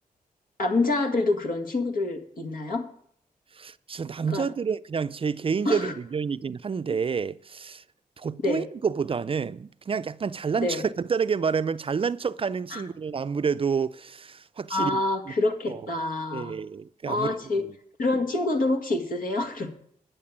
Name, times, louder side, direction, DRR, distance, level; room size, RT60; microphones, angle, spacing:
voice 1, 0.6-2.9 4.3-4.5 5.7-5.9 8.4-8.6 10.6-10.8 12.7-12.8 14.7-16.6 17.1-17.6 18.0-19.8, left 2 dB, 75° left, 1.9 m, -26 dB
voice 2, 3.6-7.8 8.2-15.0 15.7-15.8 16.3-17.3 17.6-17.7, right 6 dB, 40° right, 0.4 m, -29 dB
10.0 x 6.7 x 8.6 m
cardioid pair, 65°, 15 cm